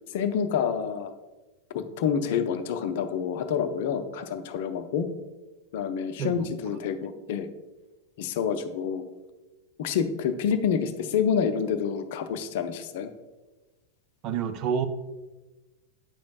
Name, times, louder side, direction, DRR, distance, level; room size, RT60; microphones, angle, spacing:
voice 1, 0.1-1.1 1.7-5.1 5.7-7.5 8.2-9.0 9.8-13.1, left 7 dB, 50° left, 9 dB, 0.5 m, -28 dB
voice 2, 6.2-6.5 14.2-14.9, right 7 dB, 35° right, 9 dB, 0.4 m, -28 dB
8.8 x 5.1 x 2.3 m, 1.1 s
figure-of-eight pair, 90°, 0 cm